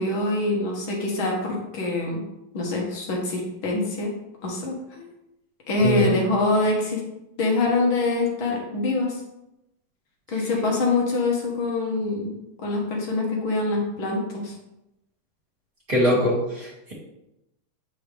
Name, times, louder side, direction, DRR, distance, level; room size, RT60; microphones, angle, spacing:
voice 1, 0.0-2.2 2.5-4.1 4.4-5.0 5.7-7.0 7.4-9.2 10.3-14.5, left 2 dB, 80° left, -1 dB, 2.2 m, -25 dB
voice 2, 15.9-16.9, equal, 25° right, -7 dB, 2.4 m, -22 dB
8.0 x 4.7 x 3.3 m, 0.89 s
omnidirectional pair, 2.2 m